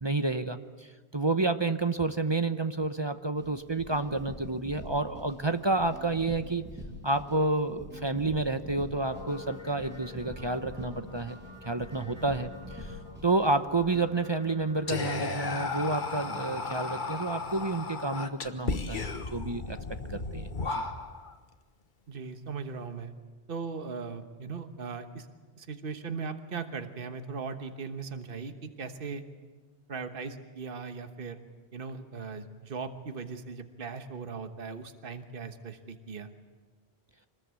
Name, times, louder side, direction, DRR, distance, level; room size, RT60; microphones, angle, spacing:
voice 1, 0.0-6.6 7.0-11.4 11.6-13.0 13.2-19.8 20.1-20.8, right 2 dB, 30° right, 9 dB, 0.8 m, -30 dB
sound 1, 3.4-14.1, equal, 10° right, 6.5 m, -46 dB
sound 2, 9.1-16.9, left 3 dB, 30° left, 3.9 m, -48 dB
Whispering, 14.9-21.3, left 3 dB, 50° left, 1.5 m, -34 dB
voice 2, 22.1-23.1 23.5-25.3 25.6-29.2 29.9-31.4 31.7-36.3, right 5 dB, 60° right, 8 dB, 1.4 m, -38 dB
25.5 x 20.0 x 8.3 m, 1.4 s
omnidirectional pair, 1.1 m